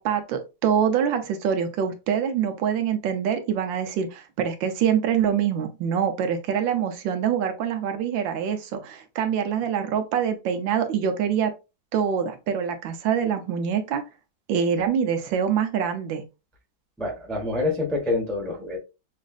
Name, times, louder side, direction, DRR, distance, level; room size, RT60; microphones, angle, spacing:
voice 1, 0.0-11.5 11.9-14.0 14.5-16.2, right 8 dB, 75° right, 1.3 m, -25 dB
voice 2, 17.0-18.8, left 2 dB, ahead, 0.5 m, -26 dB
6.1 x 2.4 x 2.3 m
omnidirectional pair, 2.1 m